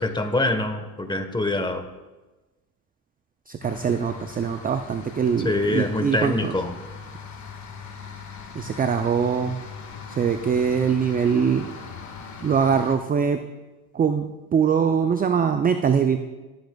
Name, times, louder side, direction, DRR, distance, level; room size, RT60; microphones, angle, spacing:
voice 1, 0.0-1.9 5.4-6.7, left 2 dB, 10° left, 7 dB, 1.2 m, -24 dB
voice 2, 3.5-6.5 8.5-9.6 10.1-11.6 12.4-13.4 13.9-16.2, right 7 dB, 20° right, 8 dB, 0.4 m, -22 dB
sound 1, 3.6-13.0, left 5 dB, 40° left, 1.7 m, -40 dB
20.0 x 7.9 x 2.3 m, 1.1 s
supercardioid pair, 85°, 45 cm